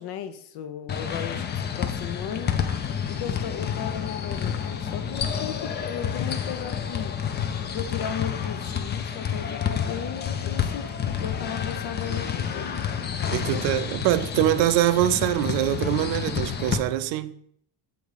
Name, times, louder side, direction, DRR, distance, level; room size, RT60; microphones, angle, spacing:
voice 1, 0.0-2.5 3.1-7.1 7.6-13.1 13.5-13.6, left 8 dB, 60° left, 0.8 m, -36 dB
sound 1, 0.9-16.8, left 8 dB, 25° left, 0.4 m, -29 dB
voice 2, 13.3-17.3, right 13 dB, 85° right, 0.6 m, -23 dB
7.0 x 4.0 x 4.8 m
cardioid pair, 145°, 44 cm